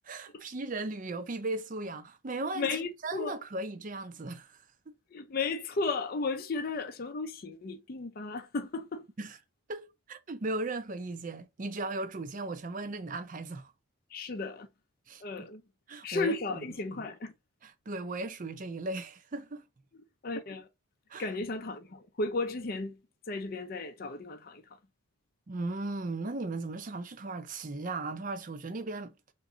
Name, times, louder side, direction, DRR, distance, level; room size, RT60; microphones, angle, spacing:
voice 1, 0.0-2.8 3.0-4.6 4.9-5.0 9.2-9.4 9.7-13.7 15.1-15.5 15.9-16.7 17.0-17.1 17.6-19.6 21.1-21.3 25.5-29.1, right 2 dB, 40° right, 0.5 m, -37 dB
voice 2, 2.5-3.3 5.1-9.1 14.1-14.7 15.2-15.6 16.0-17.3 20.2-20.7 21.2-23.0 23.3-24.6, left 3 dB, 45° left, 0.5 m, -34 dB
3.5 x 3.0 x 3.8 m
head